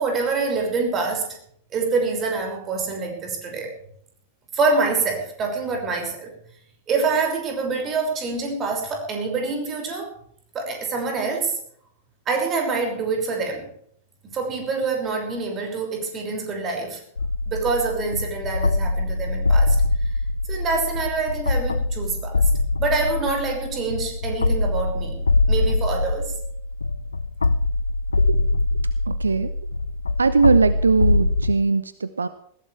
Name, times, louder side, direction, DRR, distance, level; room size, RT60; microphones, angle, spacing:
voice 1, 0.0-1.4 1.7-3.8 4.5-6.3 6.9-10.1 10.5-11.6 12.3-13.7 14.2-17.0 17.5-19.8 20.5-22.5 22.8-26.3, right 4 dB, 25° right, 3 dB, 5.9 m, -26 dB
sound 1, 17.2-31.5, left 2 dB, 75° left, 0.7 m, -23 dB
voice 2, 29.1-29.5 30.2-32.3, right 4 dB, 75° right, 14 dB, 0.8 m, -20 dB
21.0 x 16.0 x 3.4 m, 0.64 s
figure-of-eight pair, 95°, 0 cm